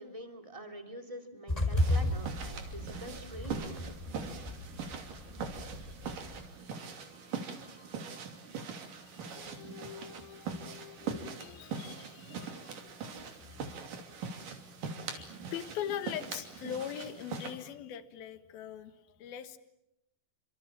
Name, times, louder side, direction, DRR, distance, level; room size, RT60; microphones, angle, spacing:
voice 1, 0.0-3.9, right 1 dB, 10° right, 5 dB, 2.5 m, -45 dB
sound 1, 1.5-6.5, left 1 dB, 10° left, 4.3 m, -34 dB
sound 2, 1.8-17.5, right 5 dB, 60° right, 4.3 m, -42 dB
voice 2, 6.4-14.1 15.0-19.6, left 10 dB, 80° left, 10 dB, 3.3 m, -44 dB
29.5 x 26.5 x 7.3 m, 0.85 s
omnidirectional pair, 4.3 m